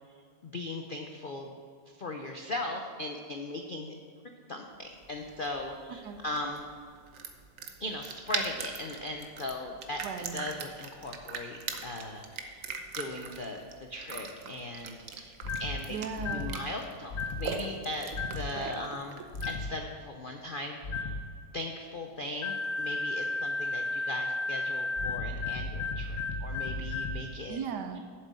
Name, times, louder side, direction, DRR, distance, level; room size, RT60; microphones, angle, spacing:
voice 1, 0.4-1.5 1.9-3.9 4.5-6.7 7.8-10.0 10.3-12.6 12.9-13.6 13.9-16.0 16.3-18.1 18.3-19.2 19.5-21.2 21.5-27.6, left 1 dB, 75° left, 3 dB, 0.4 m, -38 dB
sound 1, 4.8-19.7, right 5 dB, 55° right, 1.1 m, -42 dB
voice 2, 10.0-10.5 15.9-16.7 18.5-18.9 27.5-28.0, right 6 dB, 70° right, 8 dB, 1.3 m, -38 dB
sound 2, 15.4-15.8 16.2-16.5 17.1-17.5 18.1-18.5 19.3-19.7 20.8-21.2 22.4-27.2, left 3 dB, 55° left, 0.8 m, -33 dB
7.7 x 7.4 x 7.6 m, 2.1 s
omnidirectional pair, 1.9 m